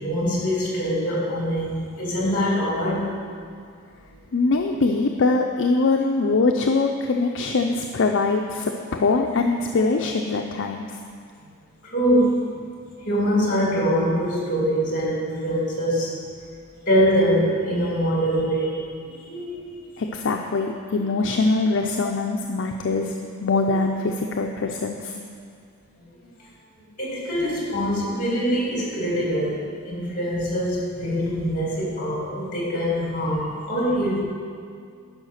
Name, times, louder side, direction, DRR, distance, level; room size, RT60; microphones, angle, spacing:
voice 1, 0.0-3.1 11.8-12.4 13.1-16.1 16.9-19.6 20.9-21.0 23.6-23.8 27.0-34.2, equal, 35° left, -5 dB, 2.9 m, -23 dB
voice 2, 4.3-11.0 20.0-25.2, left 3 dB, 55° left, 2 dB, 0.5 m, -23 dB
11.0 x 5.7 x 6.4 m, 2.2 s
head